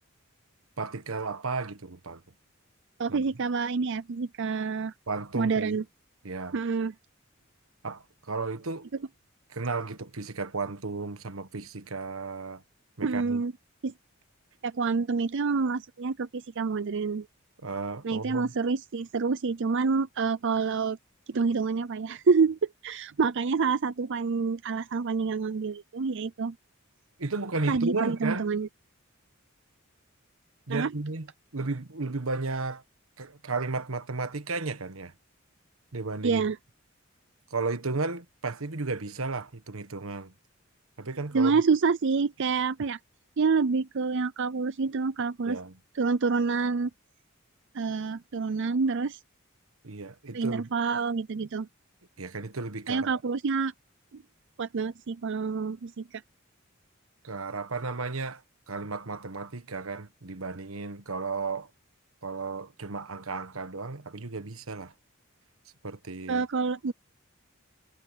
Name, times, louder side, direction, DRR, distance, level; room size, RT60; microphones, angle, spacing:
voice 1, 0.8-2.2 3.1-3.2 5.1-5.8 6.2-6.6 7.8-8.9 9.5-12.6 13.0-13.4 17.6-18.5 27.2-28.5 30.7-31.3 31.5-32.8 33.2-35.1 35.9-36.5 37.5-40.3 41.0-41.6 45.5-45.7 49.8-50.7 52.2-53.2 57.2-61.7 62.2-64.9 65.8-66.4, right 3 dB, 85° right, 1.4 m, -34 dB
voice 2, 3.0-4.9 5.3-5.8 6.5-6.9 13.0-13.5 13.8-13.9 14.6-17.3 18.0-21.0 21.3-26.5 27.7-28.7 30.7-30.9 36.2-36.6 41.3-43.0 43.4-45.6 46.0-46.9 47.7-49.2 50.3-51.7 52.9-53.7 54.1-54.2 54.6-56.2 66.3-66.9, right 4 dB, 60° right, 0.5 m, -27 dB
head